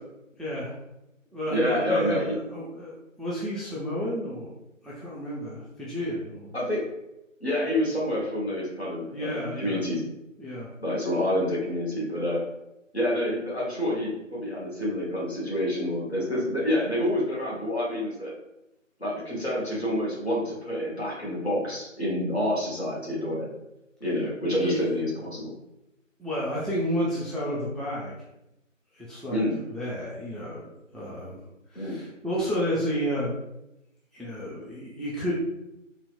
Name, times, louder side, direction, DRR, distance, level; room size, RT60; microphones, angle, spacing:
voice 1, 0.4-0.7 1.3-4.5 4.8-6.5 9.0-9.8 10.4-10.7 24.6-24.8 26.2-28.1 28.9-29.4 29.7-31.4 31.7-33.3 34.1-35.3, equal, ahead, -8 dB, 0.4 m, -31 dB
voice 2, 1.5-2.3 6.5-6.8 7.4-10.0 10.8-12.4 12.9-18.3 19.0-23.5 24.0-25.5 29.3-29.6 31.7-32.0, left 1 dB, 50° left, -6 dB, 1.2 m, -28 dB
4.0 x 2.0 x 2.4 m, 0.90 s
figure-of-eight pair, 175°, 40 cm